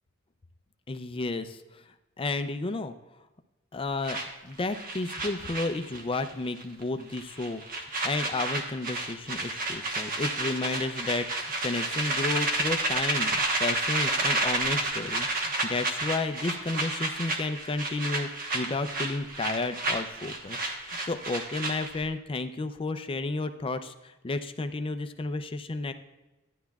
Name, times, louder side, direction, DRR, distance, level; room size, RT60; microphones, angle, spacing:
voice 1, 0.9-1.8 2.2-2.9 3.7-7.6 8.0-18.3 18.5-25.9, left 3 dB, 25° left, 9 dB, 0.4 m, -32 dB
sound 1, 4.0-6.3 6.6-6.8 7.1-22.0, right 2 dB, 45° right, 1.1 m, -30 dB
12.5 x 10.0 x 2.3 m, 1.1 s
head